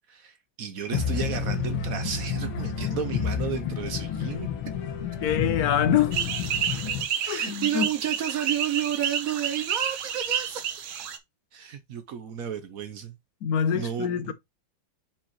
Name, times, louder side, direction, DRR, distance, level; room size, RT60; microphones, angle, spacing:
voice 1, 0.1-4.5 7.2-10.7 11.5-13.1 13.7-14.3, right 9 dB, 65° right, 0.9 m, -32 dB
sound 1, 0.9-7.0, left 7 dB, 90° left, 1.9 m, -30 dB
voice 2, 5.2-6.2 7.3-7.9 13.4-14.3, left 9 dB, 65° left, 1.0 m, -25 dB
sound 2, 6.1-11.2, right 8 dB, 85° right, 1.8 m, -30 dB
7.1 x 5.0 x 3.0 m
omnidirectional pair, 2.2 m